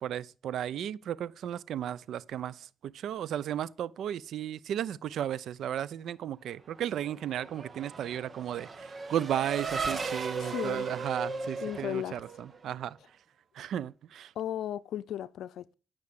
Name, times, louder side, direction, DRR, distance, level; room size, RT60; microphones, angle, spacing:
voice 1, 0.0-13.0 13.5-14.3, right 10 dB, 70° right, 0.7 m, -34 dB
Race car auto racing / Accelerating revving vroom, 6.8-12.8, right 4 dB, 40° right, 1.8 m, -37 dB
voice 2, 10.4-10.9 11.6-12.2 14.4-15.7, left 11 dB, 75° left, 0.7 m, -35 dB
14.0 x 6.4 x 8.7 m
cardioid pair, 90°, 0 cm